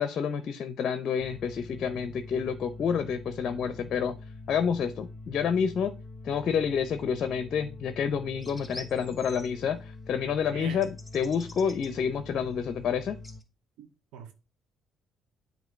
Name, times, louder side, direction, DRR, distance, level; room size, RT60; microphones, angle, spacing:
voice 1, 0.0-4.1 4.5-5.9 6.2-13.2, left 7 dB, 60° left, 0.5 m, -29 dB
sound 1, 1.2-13.4, left 3 dB, 30° left, 0.8 m, -44 dB
sound 2, 8.4-9.5 10.8-11.9 13.2-13.4, left 1 dB, 5° left, 2.1 m, -46 dB
voice 2, 10.3-10.9 13.8-14.3, right 8 dB, 80° right, 0.7 m, -44 dB
7.8 x 2.7 x 5.2 m
supercardioid pair, 60°, 0 cm